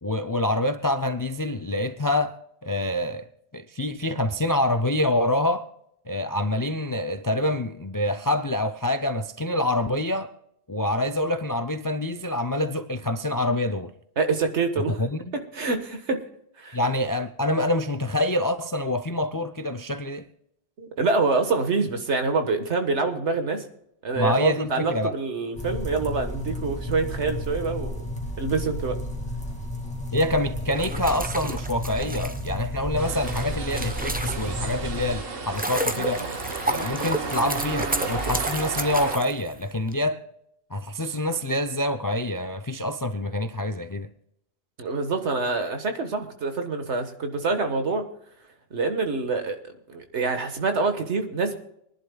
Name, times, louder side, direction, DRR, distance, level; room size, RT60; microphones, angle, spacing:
voice 1, 0.0-3.3 3.5-5.6 6.1-10.3 10.7-13.9 15.0-15.4 16.7-20.3 24.2-25.1 30.1-36.2 36.6-40.2 40.7-44.1, left 1 dB, 30° left, 0.4 m, -26 dB
voice 2, 14.2-15.0 15.3-16.2 16.6-16.8 20.8-23.7 24.0-28.1 28.4-29.0 44.8-48.1 48.7-51.5, right 3 dB, 80° right, 1.7 m, -26 dB
sound 1, 25.6-35.2, left 1 dB, 5° left, 2.0 m, -32 dB
sound 2, 30.6-34.8 35.2-39.9, right 1 dB, 10° right, 0.7 m, -31 dB
sound 3, 33.0-39.2, right 3 dB, 55° right, 1.5 m, -33 dB
24.5 x 11.0 x 2.3 m
omnidirectional pair, 1.1 m